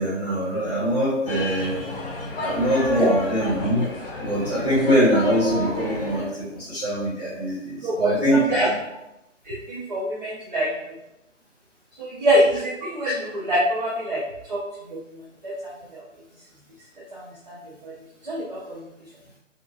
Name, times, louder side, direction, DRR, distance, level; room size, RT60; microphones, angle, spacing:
voice 1, 0.0-1.8 2.4-3.8 4.2-8.7, equal, 10° right, -18 dB, 0.9 m, -23 dB
sound 1, 1.3-6.3, left 2 dB, 45° left, 0.7 m, -32 dB
voice 2, 7.8-8.7 9.4-11.0 12.0-16.0 17.1-17.9 18.2-18.9, equal, 35° right, -6 dB, 0.5 m, -25 dB
2.8 x 2.4 x 2.3 m, 0.86 s
figure-of-eight pair, 145°, 38 cm